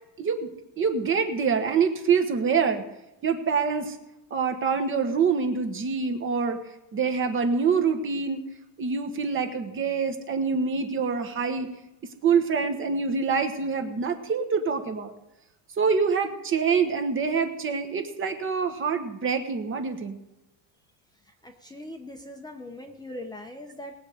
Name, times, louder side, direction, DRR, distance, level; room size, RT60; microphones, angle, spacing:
voice 1, 0.2-0.5 0.8-2.8 3.2-4.0 4.3-6.6 6.9-8.4 8.8-11.7 12.2-15.1 15.8-20.2, right 5 dB, 30° right, 6 dB, 1.3 m, -25 dB
voice 2, 21.4-23.9, left 1 dB, 10° left, 3 dB, 0.8 m, -40 dB
19.5 x 7.9 x 5.0 m, 0.96 s
cardioid pair, 160°, 42 cm